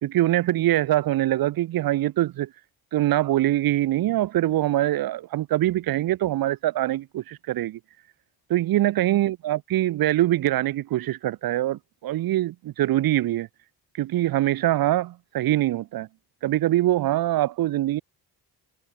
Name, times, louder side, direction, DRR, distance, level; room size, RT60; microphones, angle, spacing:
voice 1, 0.0-2.5 2.9-7.8 8.5-13.5 14.0-16.1 16.4-18.0, right 14 dB, 60° right, 0.6 m, -23 dB
cardioid pair, 105°, 41 cm